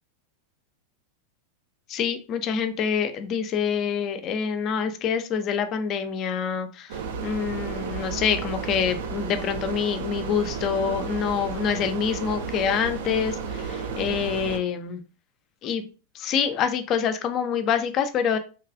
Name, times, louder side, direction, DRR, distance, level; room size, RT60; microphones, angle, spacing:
voice 1, 1.9-15.0 15.6-15.9 16.1-18.4, left 7 dB, 35° left, 9 dB, 0.4 m, -26 dB
sound 1, 6.9-14.6, right 5 dB, 55° right, 0.4 m, -32 dB
2.9 x 2.3 x 2.4 m, 0.35 s
figure-of-eight pair, 90°, 0 cm